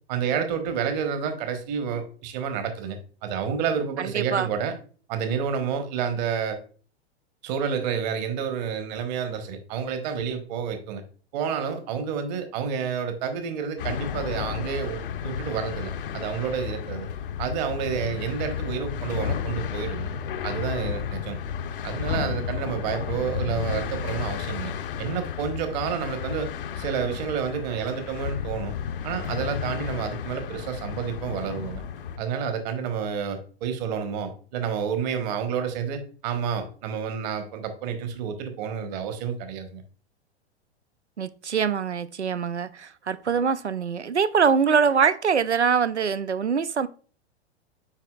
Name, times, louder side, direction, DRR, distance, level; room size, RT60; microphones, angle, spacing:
voice 1, 0.1-4.7 5.1-6.6 7.4-11.0 11.3-17.1 17.4-20.1 20.4-21.4 21.8-24.7 25.0-26.5 26.8-28.8 29.0-31.8 32.2-39.8, right 7 dB, 40° right, 1.2 m, -29 dB
voice 2, 4.0-4.5 41.2-46.9, right 6 dB, 90° right, 0.5 m, -23 dB
sound 1, 13.8-32.2, left 8 dB, 55° left, 0.7 m, -32 dB
8.8 x 4.6 x 2.4 m
figure-of-eight pair, 100°, 33 cm